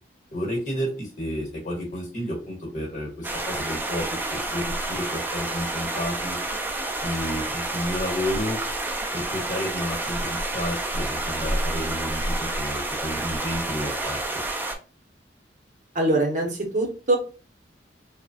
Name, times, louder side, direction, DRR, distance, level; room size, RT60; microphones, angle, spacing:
voice 1, 0.3-6.4 7.0-8.6 9.1-14.2, equal, 45° left, 1 dB, 1.1 m, -31 dB
sound 1, 3.2-14.7, right 2 dB, 10° right, 0.3 m, -29 dB
voice 2, 16.0-17.2, right 2 dB, 45° right, 1 dB, 0.7 m, -23 dB
3.0 x 2.1 x 2.6 m, 0.36 s
head